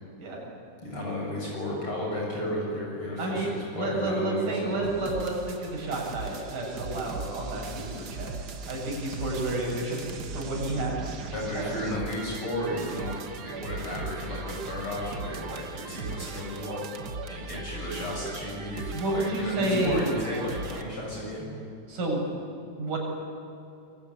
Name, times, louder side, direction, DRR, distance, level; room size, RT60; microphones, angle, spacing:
voice 1, 0.8-4.9 11.3-16.9 17.3-21.5, left 1 dB, 40° left, -3 dB, 7.4 m, -33 dB
voice 2, 3.2-8.3 8.7-11.2 11.6-11.7 18.9-20.1 21.9-22.2 22.8-23.0, right 2 dB, 85° right, -1 dB, 8.8 m, -30 dB
sound 1, 4.8-20.8, right 4 dB, 55° right, 1.1 m, -39 dB
26.5 x 23.0 x 9.8 m, 2.6 s
omnidirectional pair, 3.7 m